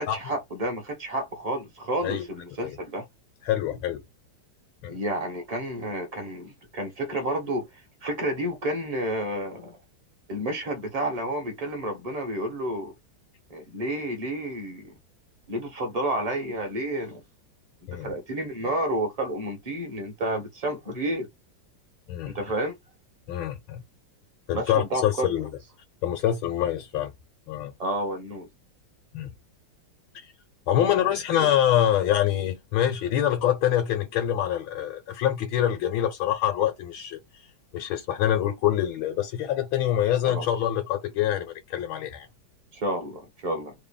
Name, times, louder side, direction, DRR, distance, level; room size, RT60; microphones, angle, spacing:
voice 1, 0.0-3.0 4.9-7.7 8.0-9.8 10.3-12.9 13.5-14.9 15.5-17.2 18.0-21.3 22.3-22.8 24.5-25.3 27.8-28.5 30.8-31.5 40.2-40.4 42.7-43.7, right 1 dB, 30° right, 0.8 m, -30 dB
voice 2, 3.4-4.0 4.8-4.9 17.9-18.1 22.1-22.3 23.3-23.8 24.5-25.5 26.0-27.1 27.5-27.7 29.1-29.3 30.7-37.2 37.7-42.3, left 11 dB, 90° left, 1.6 m, -25 dB
3.5 x 2.1 x 4.0 m
omnidirectional pair, 2.1 m